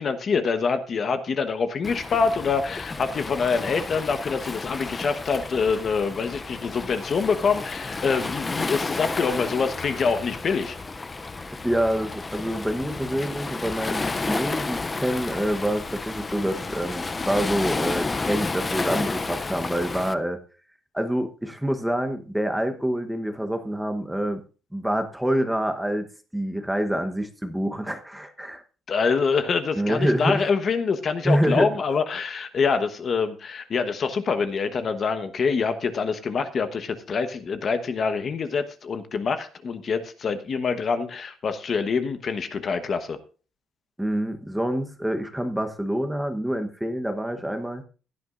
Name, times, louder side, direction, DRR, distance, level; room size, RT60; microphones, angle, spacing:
voice 1, 0.0-10.8 28.9-43.2, left 5 dB, 35° left, 9 dB, 1.1 m, -25 dB
Waves surf, 1.8-20.1, left 3 dB, 20° left, 0.5 m, -31 dB
voice 2, 11.4-20.4 20.9-24.4 24.7-26.1 26.3-28.6 29.8-30.5 31.2-31.7 44.0-47.8, right 1 dB, 5° right, 7 dB, 1.0 m, -26 dB
16.5 x 11.5 x 2.5 m, 0.36 s
cardioid pair, 155°, 0 cm